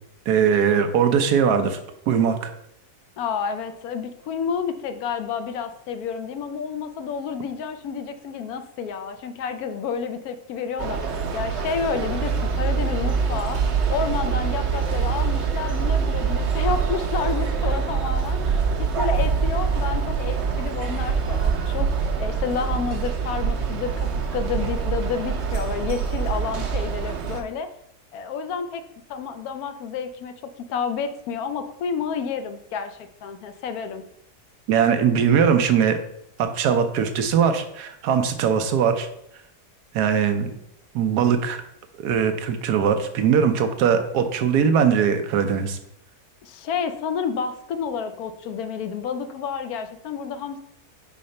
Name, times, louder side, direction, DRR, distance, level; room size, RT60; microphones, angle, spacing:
voice 1, 0.3-1.8 2.1-2.5 34.7-36.0 36.4-39.1 39.9-40.6 40.9-41.6 42.0-45.8, right 7 dB, 80° right, 7 dB, 1.2 m, -20 dB
voice 2, 3.2-13.6 13.9-21.9 22.2-27.7 28.1-28.8 29.1-34.0 46.4-50.6, left 6 dB, 75° left, 9 dB, 1.0 m, -30 dB
sound 1, 10.8-27.4, right 6 dB, 55° right, 0.9 m, -25 dB
4.8 x 4.2 x 5.3 m, 0.76 s
omnidirectional pair, 1.7 m